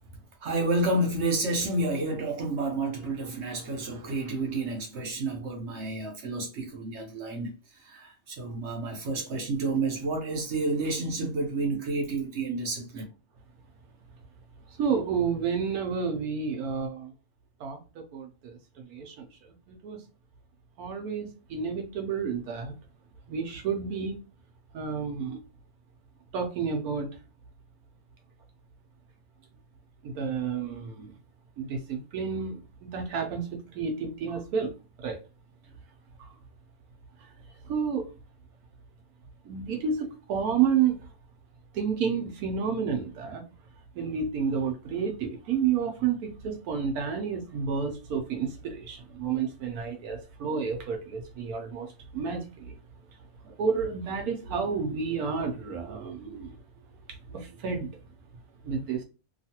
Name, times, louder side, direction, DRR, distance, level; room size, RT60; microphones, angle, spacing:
voice 1, 0.4-13.0, right 2 dB, 60° right, 0.8 m, -30 dB
voice 2, 14.8-17.1 17.6-18.6 18.9-19.2 19.7-20.0 20.8-22.7 23.3-24.2 24.7-25.4 26.3-27.1 30.0-31.1 31.6-33.5 33.7-34.7 35.0-35.2 36.2-36.3 37.7-38.1 39.4-41.0 41.7-43.4 44.0-51.9 52.1-52.7 53.4-56.5 57.3-57.9 58.6-59.0, right 6 dB, 85° right, 1.1 m, -30 dB
2.9 x 2.3 x 2.8 m
omnidirectional pair, 1.5 m